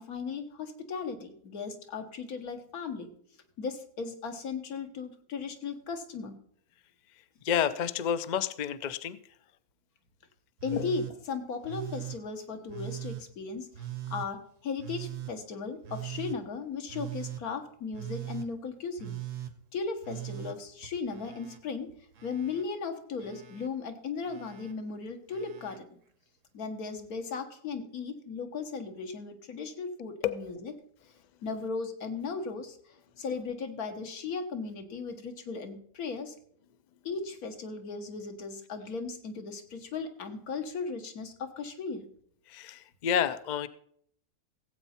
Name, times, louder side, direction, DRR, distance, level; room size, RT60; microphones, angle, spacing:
voice 1, 0.0-3.1 3.6-6.4 10.6-19.2 19.7-21.9 22.2-25.9 26.5-30.7 31.4-32.8 33.2-36.4 37.1-42.1, left 5 dB, 80° left, 6 dB, 1.7 m, -37 dB
voice 2, 7.4-9.2 10.7-10.9 30.2-30.4 42.5-43.7, left 9 dB, 60° left, 12 dB, 0.4 m, -29 dB
Telephone, 10.6-11.1 11.6-12.2 12.7-13.2 13.7-14.3 14.8-15.3 15.8-16.4 16.9-17.4 17.9-18.5 19.0-19.5 20.0-21.6 21.9-22.6 23.2-23.7 24.2-24.7 25.3-25.8 27.0-27.1, right 13 dB, 60° right, 1.3 m, -40 dB
16.5 x 8.1 x 4.3 m, 0.65 s
omnidirectional pair, 1.5 m